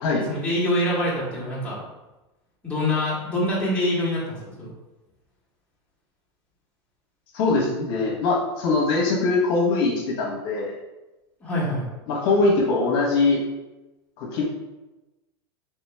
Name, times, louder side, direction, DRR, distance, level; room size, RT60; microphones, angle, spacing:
voice 1, 0.3-1.8 2.6-4.7 11.4-11.9, left 1 dB, 10° left, -7 dB, 1.3 m, -25 dB
voice 2, 7.3-10.7 12.1-13.4 14.2-14.4, left 3 dB, 60° left, -3 dB, 1.0 m, -22 dB
3.4 x 2.9 x 3.3 m, 1.0 s
supercardioid pair, 135°, 14 cm